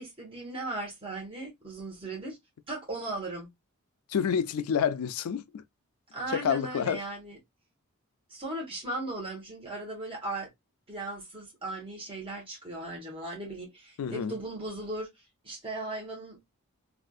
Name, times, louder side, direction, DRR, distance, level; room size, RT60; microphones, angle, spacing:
voice 1, 0.0-2.4 2.7-3.5 6.1-7.4 8.3-10.5 10.9-15.1 15.4-16.5, right 2 dB, 25° right, 1.3 m, -37 dB
voice 2, 4.1-5.6 6.3-7.0 14.0-14.4, left 7 dB, 80° left, 0.4 m, -28 dB
3.5 x 2.4 x 2.3 m
head